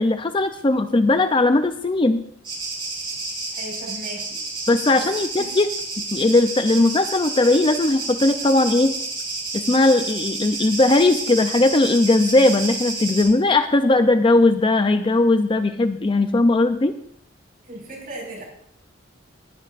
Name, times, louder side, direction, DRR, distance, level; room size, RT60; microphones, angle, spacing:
voice 1, 0.0-2.2 4.7-5.7 6.1-9.0 9.5-16.9, left 2 dB, 25° left, 9 dB, 0.5 m, -18 dB
sound 1, 2.4-13.2, right 3 dB, 25° right, 4.3 m, -30 dB
voice 2, 3.5-4.4 4.9-5.1 5.4-5.5 17.6-18.4, right 1 dB, 45° right, -1 dB, 5.1 m, -36 dB
20.5 x 9.9 x 2.5 m, 0.66 s
head